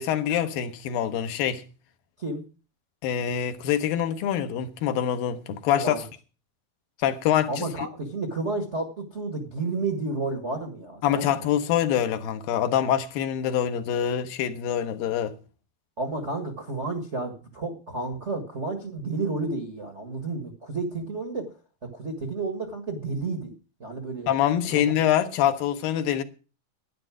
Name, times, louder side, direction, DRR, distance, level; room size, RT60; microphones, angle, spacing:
voice 1, 0.0-1.6 3.0-6.0 7.0-7.9 11.0-15.4 24.3-26.2, left 10 dB, 80° left, 2.7 m, -25 dB
voice 2, 5.7-6.0 7.5-11.5 16.0-21.5 21.9-23.5 23.8-24.3 24.7-25.0, right 3 dB, 45° right, 0.8 m, -31 dB
12.0 x 10.0 x 6.2 m
omnidirectional pair, 4.1 m